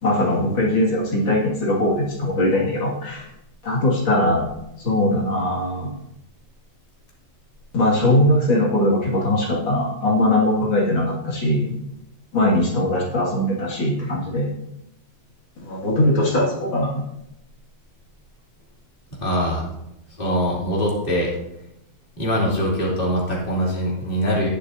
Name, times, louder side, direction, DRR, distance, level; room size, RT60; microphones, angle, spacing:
voice 1, 0.0-3.3 3.6-4.5 4.8-5.9 7.7-11.7 12.3-14.5 15.6-17.0, left 1 dB, 70° left, -5 dB, 2.9 m, -20 dB
voice 2, 19.2-19.6 20.2-21.3 22.2-24.5, equal, 25° left, -5 dB, 2.9 m, -22 dB
20.0 x 6.7 x 2.7 m, 0.84 s
omnidirectional pair, 2.2 m